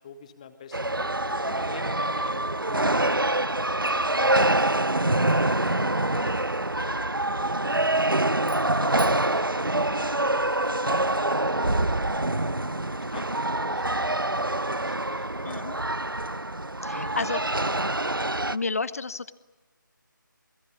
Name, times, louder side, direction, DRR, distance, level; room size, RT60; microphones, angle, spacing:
voice 1, 0.0-3.3 3.8-4.5 5.1-7.9 8.6-11.8 12.9-15.6 16.9-17.6 18.0-18.2, left 6 dB, 20° left, 9 dB, 1.6 m, -46 dB
sound 1, 0.7-18.6, right 1 dB, 85° right, 0.9 m, -25 dB
sound 2, 8.4-10.7, right 2 dB, 30° right, 3.4 m, -48 dB
voice 2, 15.4-15.7 16.8-17.4 18.5-19.3, left 4 dB, 45° left, 15 dB, 1.3 m, -30 dB
28.0 x 20.5 x 9.9 m, 1.1 s
figure-of-eight pair, 155°, 11 cm